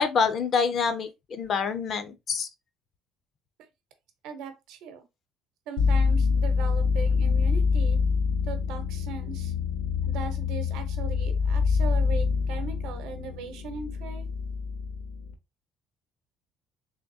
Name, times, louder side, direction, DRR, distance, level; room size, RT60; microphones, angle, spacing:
voice 1, 0.0-2.5, left 5 dB, 35° left, 0.4 m, -26 dB
voice 2, 4.2-5.0 5.7-8.0 8.4-9.5 10.0-14.3, right 6 dB, 75° right, 0.8 m, -39 dB
sound 1, 5.8-15.3, left 5 dB, 80° left, 0.7 m, -26 dB
3.4 x 3.3 x 2.6 m
cardioid pair, 180°, 0 cm